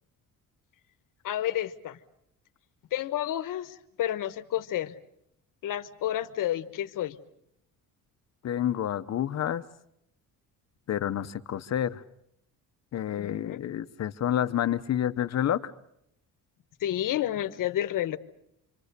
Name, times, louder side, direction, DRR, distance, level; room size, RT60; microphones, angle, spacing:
voice 1, 1.2-2.0 2.9-4.9 5.6-7.2 13.2-13.6 16.8-18.2, left 12 dB, 60° left, 9 dB, 1.2 m, -30 dB
voice 2, 8.4-9.6 10.9-12.0 12.9-15.7, left 10 dB, 45° left, 11 dB, 0.9 m, -29 dB
27.0 x 25.5 x 6.8 m, 0.76 s
cardioid pair, 155°, 36 cm